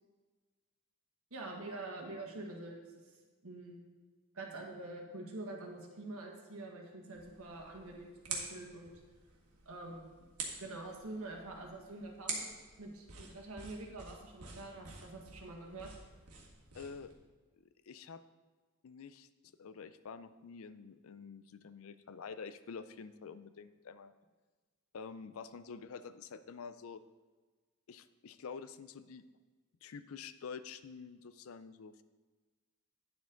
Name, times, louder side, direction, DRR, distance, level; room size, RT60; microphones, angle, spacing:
voice 1, 1.3-2.8 3.4-3.9 4.3-9.0 9.6-10.3 10.6-12.5 12.8-15.9, right 2 dB, 75° right, 1 dB, 1.6 m, -46 dB
sound 1, 7.1-17.1, right 4 dB, 90° right, 1.6 m, -47 dB
voice 2, 16.7-17.1 17.9-18.2 18.8-19.3 19.6-24.1 24.9-27.0 27.9-29.3 29.8-32.0, left 5 dB, 70° left, 13 dB, 0.4 m, -48 dB
9.5 x 7.3 x 3.8 m, 1.3 s
head